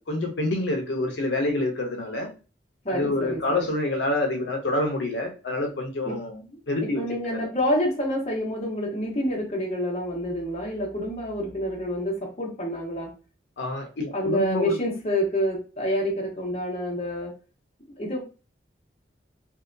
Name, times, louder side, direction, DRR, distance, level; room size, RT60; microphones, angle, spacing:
voice 1, 0.0-2.3 2.9-6.4 6.7-7.0 7.3-7.4 13.6-14.8, left 2 dB, 75° left, 2 dB, 0.6 m, -27 dB
voice 2, 2.8-3.6 6.0-6.2 6.5-6.6 7.0-13.1 14.1-17.3 18.0-18.2, equal, 35° left, -1 dB, 0.8 m, -28 dB
2.6 x 2.2 x 2.5 m, 0.33 s
head